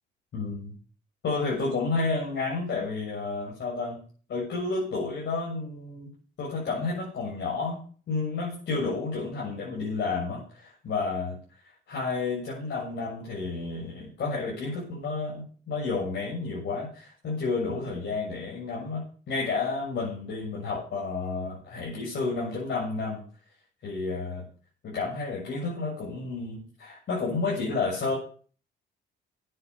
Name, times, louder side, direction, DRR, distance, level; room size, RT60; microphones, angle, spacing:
voice 1, 0.3-0.7 1.2-4.0 4.3-6.1 6.4-11.4 11.9-23.2 23.8-24.4 24.8-28.1, left 3 dB, 65° left, -5 dB, 7.4 m, -31 dB
10.0 x 9.2 x 8.5 m, 0.42 s
cardioid pair, 90°, 20 cm